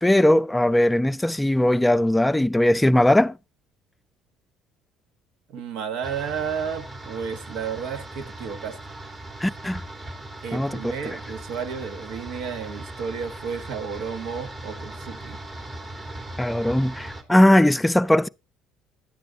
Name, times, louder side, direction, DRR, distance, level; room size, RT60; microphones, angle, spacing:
voice 1, 0.0-3.4 9.4-9.8 10.5-10.8 16.4-18.3, left 1 dB, 10° left, 0.5 m, -19 dB
voice 2, 5.5-8.8 10.4-15.4, right 6 dB, 70° right, 1.4 m, -32 dB
sound 1, 6.0-17.2, right 1 dB, 30° right, 2.9 m, -39 dB
11.5 x 9.2 x 3.9 m
hypercardioid pair, 70°, 0 cm